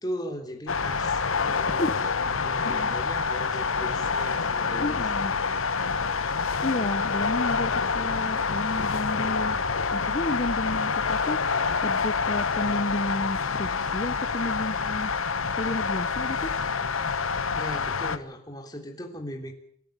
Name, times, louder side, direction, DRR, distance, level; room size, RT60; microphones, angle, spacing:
voice 1, 0.0-5.1 17.6-19.5, equal, 20° left, 4 dB, 3.2 m, -38 dB
sound 1, 0.7-18.2, left 5 dB, 75° left, 1.2 m, -27 dB
voice 2, 1.1-1.9 2.6-2.9 4.8-5.3 6.6-9.6 9.9-11.4 11.8-15.1 15.6-16.5, left 1 dB, 35° left, 9 dB, 1.0 m, -32 dB
27.0 x 11.5 x 9.4 m, 0.68 s
head